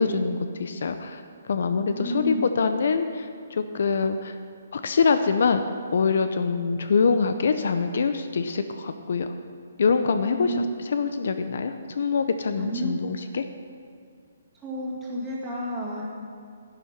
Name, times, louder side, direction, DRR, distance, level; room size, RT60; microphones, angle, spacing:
voice 1, 0.0-4.3 4.7-5.6 5.9-9.3 9.8-13.4, left 5 dB, 55° left, 9 dB, 0.6 m, -24 dB
voice 2, 1.9-2.5 10.2-10.7 12.6-12.9 14.6-16.0, right 1 dB, 10° right, -7 dB, 2.2 m, -31 dB
11.5 x 9.5 x 5.9 m, 2.3 s
hypercardioid pair, 175°, 0 cm